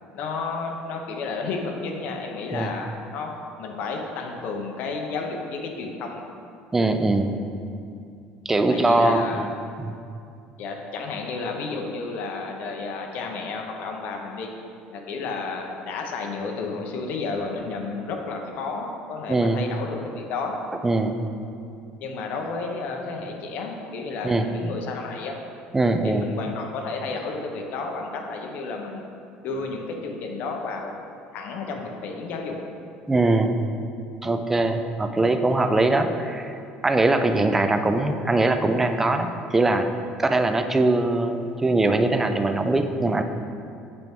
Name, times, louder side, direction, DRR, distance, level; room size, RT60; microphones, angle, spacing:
voice 1, 0.1-3.3 3.6-6.2 8.7-9.4 10.6-14.5 14.9-20.6 22.0-25.4 26.0-29.0 29.4-31.0 31.3-32.6, left 4 dB, 55° left, 2 dB, 0.8 m, -32 dB
voice 2, 6.7-7.3 8.5-9.5 9.8-9.9 19.3-19.6 20.8-21.1 24.2-24.4 25.7-26.2 33.1-33.6 34.2-36.5 36.8-39.9 40.2-43.2, right 2 dB, 10° right, 7 dB, 0.3 m, -21 dB
7.9 x 4.5 x 3.6 m, 2.5 s
cardioid pair, 150°, 3 cm